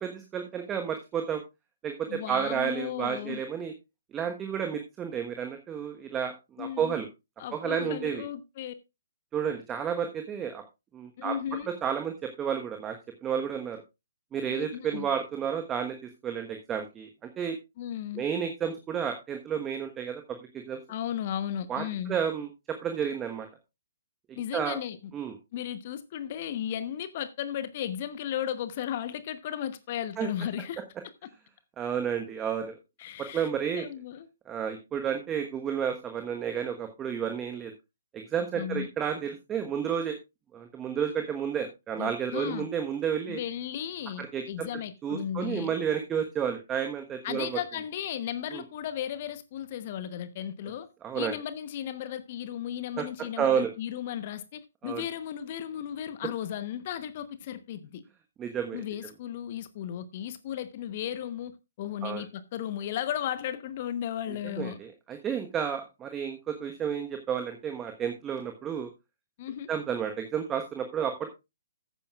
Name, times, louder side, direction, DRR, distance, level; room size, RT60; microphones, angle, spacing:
voice 1, 0.0-1.4 1.8-3.7 4.1-7.1 7.5-8.2 9.3-10.6 10.9-11.3 11.8-13.8 14.3-17.1 17.4-17.6 18.1-20.8 21.7-21.8 22.1-22.5 22.8-23.5 24.3-24.8 25.1-25.3 30.2-30.3 31.8-32.7 33.2-33.8 34.5-37.7 38.1-40.2 40.5-43.4 44.2-44.7 45.0-47.6 48.5-48.6 51.0-51.4 53.0-53.1 53.4-53.7 54.8-55.0 58.4-58.8 62.0-62.2 64.4-68.9 69.7-71.3, right 8 dB, 15° right, 1.2 m, -31 dB
voice 2, 2.1-3.4 6.6-7.0 7.4-8.7 11.2-11.7 14.5-15.1 17.8-18.3 20.9-22.2 24.4-25.0 25.5-30.8 33.0-33.5 33.7-34.3 38.5-38.9 42.0-42.7 43.3-45.7 47.2-50.9 51.1-58.0 58.7-61.5 61.8-64.8 69.4-69.7, left 10 dB, 40° left, 1.0 m, -35 dB
14.5 x 9.3 x 2.4 m
figure-of-eight pair, 130°, 0 cm